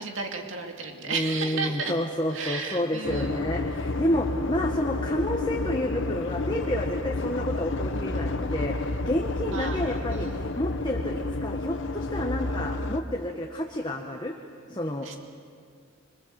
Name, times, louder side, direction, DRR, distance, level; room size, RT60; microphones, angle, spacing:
voice 1, 0.0-1.9 2.3-3.5 9.5-10.5 15.0-15.2, right 4 dB, 65° right, 3 dB, 2.6 m, -34 dB
voice 2, 1.1-8.8 9.0-14.3 14.7-15.1, left 1 dB, 20° left, 1 dB, 1.7 m, -30 dB
sound 1, 3.0-13.0, left 2 dB, 60° left, 1.1 m, -30 dB
26.0 x 25.5 x 7.8 m, 2.2 s
head